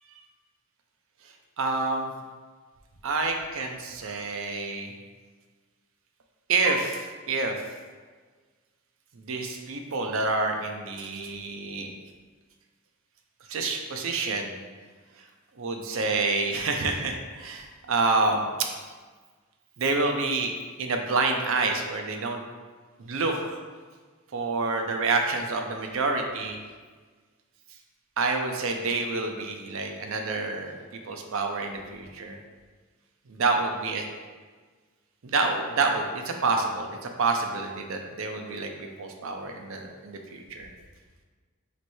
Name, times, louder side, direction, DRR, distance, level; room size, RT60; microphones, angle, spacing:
voice 1, 1.6-2.1 3.0-4.9 6.5-7.6 9.2-11.9 13.5-14.5 15.6-18.5 19.8-20.5 20.8-22.4 23.0-23.6 24.3-26.6 28.2-32.4 33.3-34.0 35.2-40.7, right 3 dB, 65° right, 3 dB, 0.5 m, -28 dB
3.1 x 3.0 x 4.4 m, 1.5 s
head